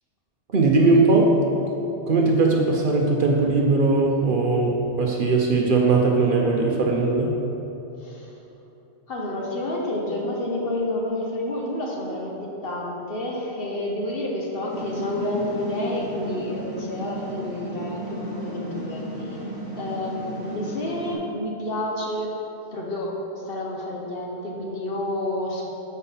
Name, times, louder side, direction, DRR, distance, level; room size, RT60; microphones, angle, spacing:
voice 1, 0.5-1.4 2.1-7.3, right 3 dB, 55° right, 0 dB, 0.8 m, -19 dB
voice 2, 9.1-19.4 19.8-22.3 22.7-23.1 23.5-25.6, left 1 dB, 55° left, -2 dB, 1.1 m, -29 dB
sound 1, 14.7-21.1, equal, 20° right, 1.4 m, -34 dB
7.1 x 4.4 x 5.6 m, 3.0 s
omnidirectional pair, 1.2 m